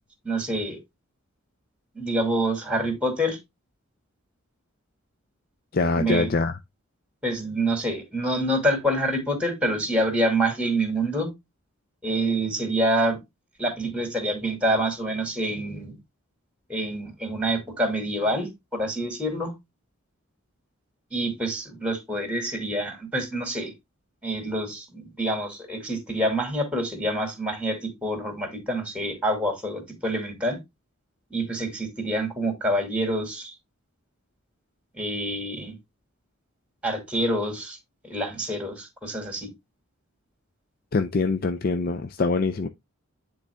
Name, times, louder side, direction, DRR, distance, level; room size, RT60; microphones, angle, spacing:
voice 1, 0.2-0.8 1.9-3.4 6.0-6.3 7.2-11.3 12.0-13.2 13.6-16.0 16.7-19.5 21.1-23.7 24.2-30.6 31.3-33.5 34.9-35.8 36.8-37.8 38.0-39.5, right 1 dB, 5° right, 2.2 m, -27 dB
voice 2, 5.7-6.6 40.9-42.7, left 3 dB, 45° left, 0.4 m, -24 dB
9.8 x 3.9 x 3.4 m
head